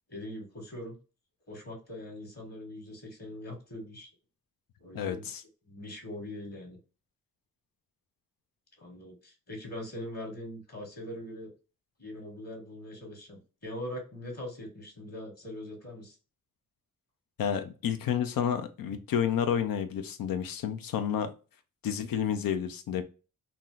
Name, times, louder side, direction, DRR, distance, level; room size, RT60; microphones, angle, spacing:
voice 1, 0.1-1.0 1.5-4.1 4.8-5.3 5.7-6.8 8.8-11.5 12.0-16.2, left 1 dB, 45° left, 2 dB, 1.4 m, -42 dB
voice 2, 4.9-5.4 17.4-21.3 21.8-23.0, left 8 dB, 70° left, 9 dB, 0.6 m, -30 dB
2.7 x 2.0 x 3.7 m, 0.34 s
supercardioid pair, 40°, 36 cm